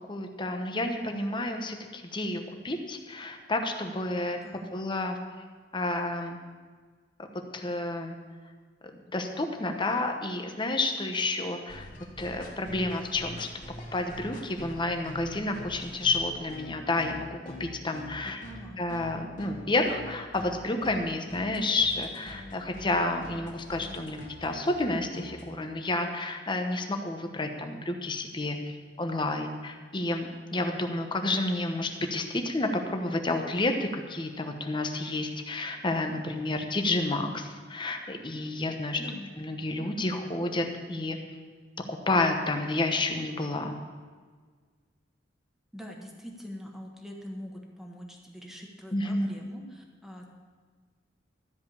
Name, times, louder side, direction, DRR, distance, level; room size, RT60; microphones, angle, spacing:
voice 1, 0.1-4.4 4.7-5.2 5.7-6.4 7.5-8.2 9.1-11.9 12.2-13.5 13.9-17.3 17.6-18.4 18.8-39.0 39.4-41.2 41.9-43.7 48.9-49.3, left 2 dB, 25° left, 5 dB, 1.0 m, -30 dB
sound 1, 11.7-25.5, left 1 dB, 45° left, 2.2 m, -44 dB
voice 2, 18.2-18.8 39.0-39.3 45.7-50.3, equal, ahead, 0 dB, 1.4 m, -43 dB
13.0 x 5.1 x 8.3 m, 1.5 s
head